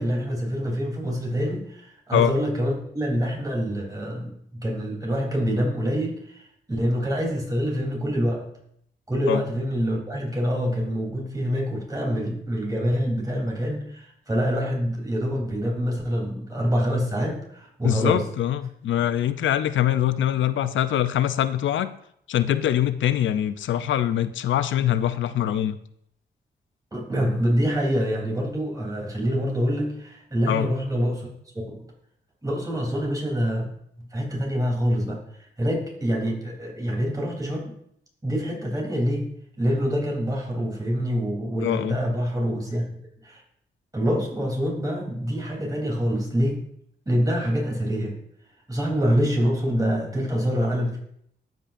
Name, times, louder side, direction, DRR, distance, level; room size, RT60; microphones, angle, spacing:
voice 1, 0.0-8.5 9.1-18.2 26.9-31.3 31.7-31.8 32.4-33.7 34.1-37.7 38.2-39.3 39.6-42.9 43.2-43.4 43.9-46.6 47.0-48.2 48.7-51.0, equal, 20° right, -2 dB, 3.2 m, -26 dB
voice 2, 17.8-21.9 22.3-25.8 30.5-30.7 41.6-42.0, left 11 dB, 85° left, 13 dB, 0.5 m, -23 dB
13.5 x 5.4 x 2.6 m, 0.70 s
cardioid pair, 80°, 19 cm